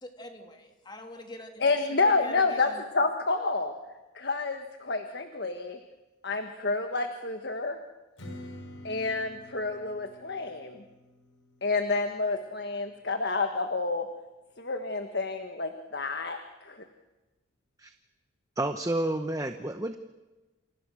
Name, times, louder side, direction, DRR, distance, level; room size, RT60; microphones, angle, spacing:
voice 1, 0.0-1.7 2.0-2.8, left 1 dB, 20° left, 4 dB, 3.0 m, -45 dB
voice 2, 1.6-3.7 4.1-5.8 6.2-7.8 8.8-10.8 11.6-14.0 14.6-16.8, left 3 dB, 55° left, 6 dB, 1.5 m, -29 dB
Strum, 8.2-13.4, left 1 dB, 80° left, 4.6 m, -49 dB
voice 3, 18.6-20.0, right 1 dB, 15° right, 8 dB, 0.9 m, -30 dB
28.5 x 27.5 x 6.4 m, 1.1 s
head